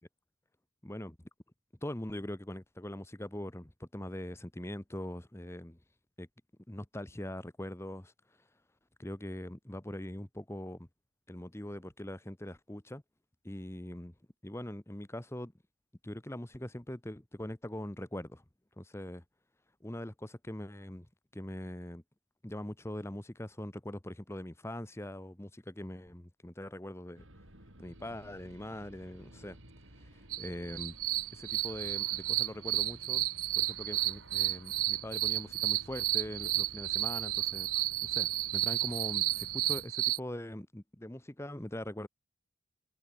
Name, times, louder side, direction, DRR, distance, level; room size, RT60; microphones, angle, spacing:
voice 1, 0.8-1.2 1.8-5.8 6.2-6.3 6.7-8.1 9.0-10.9 11.3-13.0 13.4-14.1 14.4-15.5 16.0-18.4 18.8-19.2 19.8-21.1 21.3-22.0 22.4-27.3 27.8-29.6 30.0-30.9 31.3-33.3 33.5-37.7 38.0-42.1, left 1 dB, 10° left, 1.0 m, -42 dB
sound 1, 27.2-39.9, right 1 dB, 60° right, 6.6 m, -55 dB
Crickets At Night - Clean sound, 30.3-40.2, right 16 dB, 85° right, 1.2 m, -32 dB
head